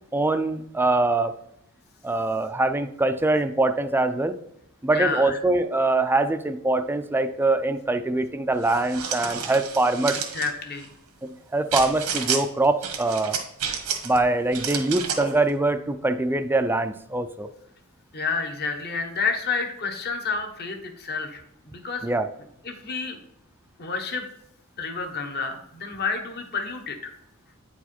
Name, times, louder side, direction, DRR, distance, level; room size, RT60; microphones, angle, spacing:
voice 1, 0.1-1.4 2.0-4.4 4.8-10.2 11.2-13.4 14.0-17.5 22.0-22.3, right 2 dB, 10° right, 9 dB, 0.4 m, -23 dB
voice 2, 4.9-5.4 10.3-10.9 18.1-22.1 22.6-23.2 23.8-24.3 24.8-27.1, left 4 dB, 45° left, 5 dB, 1.2 m, -29 dB
sound 1, 8.6-10.5 11.7-12.4 12.8-14.2 14.5-15.4, right 7 dB, 85° right, 1.3 m, -30 dB
8.9 x 4.7 x 4.3 m, 0.76 s
head